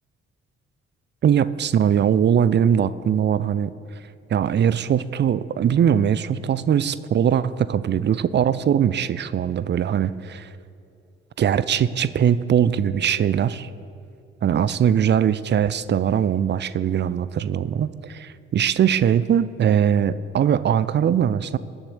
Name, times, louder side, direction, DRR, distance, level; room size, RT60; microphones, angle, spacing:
voice 1, 1.2-3.7 4.3-10.5 11.4-13.7 14.4-21.6, right 9 dB, 35° right, 16 dB, 0.6 m, -21 dB
19.5 x 7.3 x 7.2 m, 2.6 s
figure-of-eight pair, 40°, 33 cm